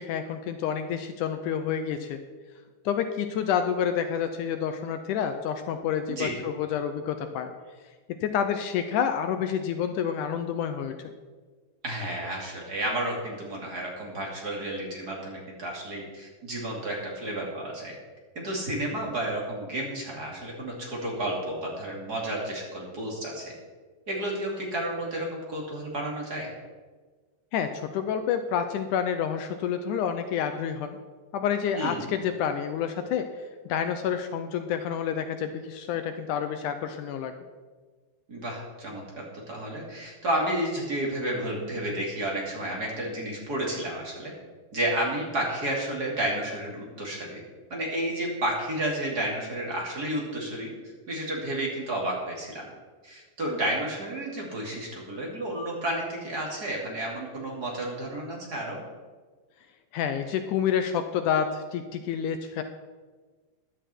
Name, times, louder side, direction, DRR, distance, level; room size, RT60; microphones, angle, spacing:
voice 1, 0.0-2.2 2.9-7.5 8.1-11.1 27.5-31.0 31.3-33.3 33.7-37.3 59.9-62.6, left 8 dB, 75° left, 8 dB, 2.1 m, -28 dB
voice 2, 6.1-6.4 11.8-17.9 18.3-23.5 24.1-26.5 31.7-32.1 38.3-44.3 44.7-47.4 47.7-50.7 51.1-52.7 53.0-58.8, right 1 dB, 30° right, -3 dB, 3.0 m, -31 dB
15.0 x 11.5 x 4.5 m, 1.4 s
omnidirectional pair, 3.9 m